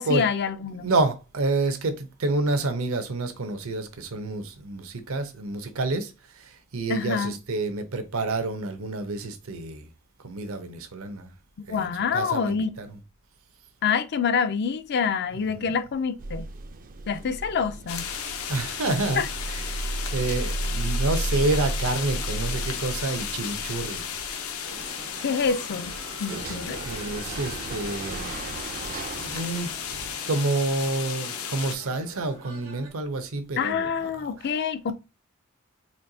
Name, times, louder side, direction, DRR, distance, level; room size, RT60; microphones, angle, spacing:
voice 1, 0.0-0.9 6.9-7.3 11.7-12.8 13.8-16.5 17.1-18.1 19.2-19.3 25.2-25.9 26.2-26.8 33.6-34.9, left 6 dB, 50° left, 0.4 m, -26 dB
voice 2, 0.7-9.9 10.2-11.3 11.7-13.0 15.3-15.7 18.5-24.1 26.7-29.7 30.2-34.6, right 2 dB, 70° right, 0.8 m, -29 dB
sound 1, 16.2-30.2, right 2 dB, 40° right, 0.4 m, -34 dB
sound 2, 17.9-31.8, left 7 dB, 80° left, 0.7 m, -34 dB
sound 3, 24.6-32.9, right 2 dB, 90° right, 1.4 m, -47 dB
4.3 x 2.7 x 2.7 m
head